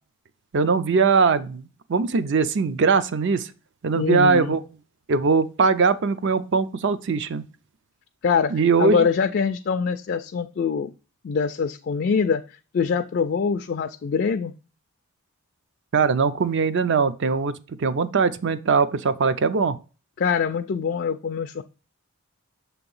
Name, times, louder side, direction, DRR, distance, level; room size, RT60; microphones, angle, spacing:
voice 1, 0.5-3.5 3.8-4.6 5.1-7.4 8.5-9.1 15.9-19.8, right 5 dB, 55° right, 13 dB, 0.5 m, -21 dB
voice 2, 3.9-4.6 8.2-8.5 8.8-10.9 11.2-12.4 12.7-14.5 20.2-21.6, left 6 dB, 45° left, 6 dB, 0.3 m, -24 dB
6.9 x 2.9 x 5.3 m, 0.34 s
head